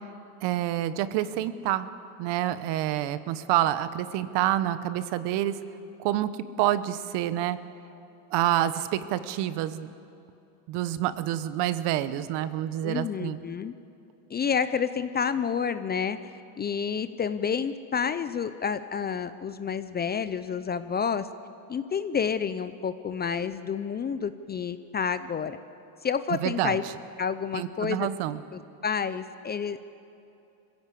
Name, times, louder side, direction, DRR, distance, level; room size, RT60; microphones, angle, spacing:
voice 1, 0.4-1.9 2.2-5.6 6.0-6.3 6.6-7.6 8.3-9.9 10.7-13.4 26.4-26.8 27.5-28.4, right 13 dB, 60° right, 13 dB, 1.1 m, -27 dB
voice 2, 12.8-13.7 14.3-21.3 21.7-25.6 26.0-26.8 27.2-28.1 28.5-29.9, left 6 dB, 20° left, 12 dB, 0.6 m, -29 dB
22.0 x 16.0 x 8.3 m, 2.8 s
supercardioid pair, 110°, 47 cm